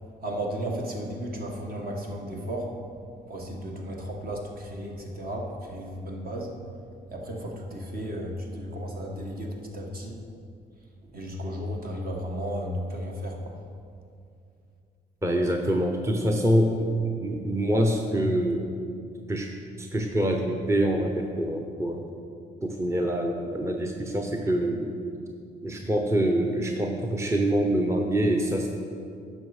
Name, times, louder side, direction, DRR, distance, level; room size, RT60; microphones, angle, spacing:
voice 1, 0.2-2.7 3.3-6.5 7.1-10.2 11.1-13.6, equal, 50° right, 0 dB, 1.6 m, -34 dB
voice 2, 15.2-18.7 19.3-19.5 19.8-22.0 22.6-25.0 25.6-28.7, right 1 dB, 15° right, 2 dB, 0.8 m, -25 dB
10.5 x 6.3 x 4.9 m, 2.4 s
cardioid pair, 90°, 20 cm